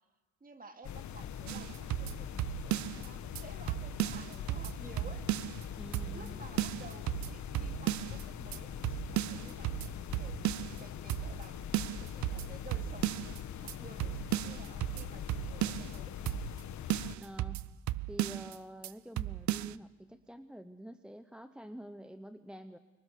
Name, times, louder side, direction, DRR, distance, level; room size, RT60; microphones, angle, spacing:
voice 1, 0.4-5.2 6.1-9.8 10.2-16.1, right 3 dB, 30° right, 6 dB, 2.5 m, -53 dB
sound 1, 0.8-17.2, left 9 dB, 70° left, 1.5 m, -43 dB
sound 2, 1.5-3.1 3.4-3.5 3.7-5.6 5.9-6.3 6.6-8.2 8.5-8.6 8.8-10.8 11.1-11.5 11.7-13.4 13.7-13.8 14.0-16.0 16.3-16.6 16.9-18.6 18.8-18.9 19.2-19.7, right 15 dB, 70° right, 0.6 m, -35 dB
voice 2, 5.8-6.4 17.2-17.7 18.1-22.8, equal, 5° right, 10 dB, 0.9 m, -48 dB
24.5 x 23.0 x 6.7 m, 1.4 s
cardioid pair, 90°, 30 cm